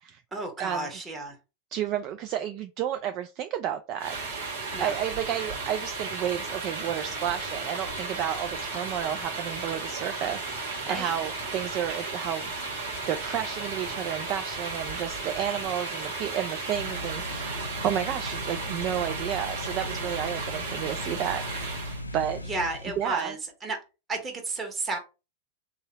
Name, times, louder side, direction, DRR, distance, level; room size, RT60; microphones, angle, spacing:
voice 1, 0.3-1.4 4.7-5.0 10.9-11.1 22.5-23.8 24.1-25.0, right 2 dB, 20° right, 2 dB, 1.3 m, -32 dB
voice 2, 1.7-4.1 4.8-12.5 12.8-21.8 22.1-22.4 23.0-23.4, right 10 dB, 40° right, 8 dB, 0.3 m, -31 dB
sound 1, 4.0-22.0, right 4 dB, 60° right, 1.2 m, -35 dB
Musical instrument, 6.5-16.8, left 6 dB, 55° left, 0.7 m, -46 dB
sound 2, 16.7-23.2, left 1 dB, 85° left, 0.3 m, -38 dB
3.6 x 2.7 x 2.9 m, 0.29 s
figure-of-eight pair, 90°, 0 cm